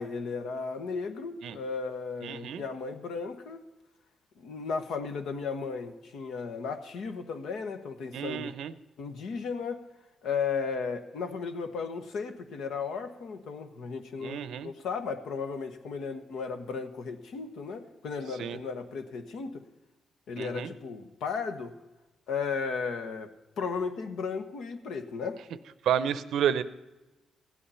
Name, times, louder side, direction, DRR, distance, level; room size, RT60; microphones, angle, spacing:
voice 1, 0.0-3.6 4.4-8.5 9.0-9.8 10.2-19.6 20.3-21.7 22.3-23.3 23.6-25.4, left 5 dB, 80° left, 7 dB, 1.2 m, -35 dB
voice 2, 2.2-2.6 8.1-8.7 14.2-14.7 18.4-18.6 20.4-20.7 25.8-26.6, right 9 dB, 80° right, 15 dB, 0.6 m, -30 dB
15.5 x 8.6 x 5.6 m, 1.0 s
cardioid pair, 75°, 0 cm